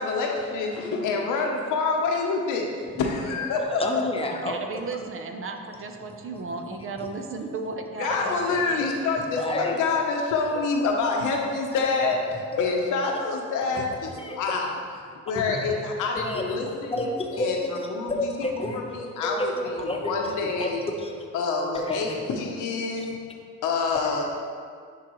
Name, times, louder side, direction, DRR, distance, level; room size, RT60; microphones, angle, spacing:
voice 1, 0.0-2.7 3.0-3.8 8.0-12.2 12.6-14.1 14.4-14.8 15.3-20.8 21.3-23.1 23.6-24.2, left 4 dB, 90° left, 1 dB, 0.9 m, -27 dB
voice 2, 3.8-4.6 7.0-7.3 8.5-10.1 10.3-10.4 13.0-13.1 13.7-13.8 14.1-14.6 15.3-15.6 16.2-16.6 16.9-17.5 17.7-18.8 19.2-20.1 20.4-21.3 21.7-22.2 23.0-23.1, left 1 dB, 20° left, 1 dB, 0.9 m, -31 dB
voice 3, 4.3-8.9, right 4 dB, 45° right, 5 dB, 0.7 m, -35 dB
10.0 x 3.8 x 3.1 m, 2.1 s
cardioid pair, 90°, 30 cm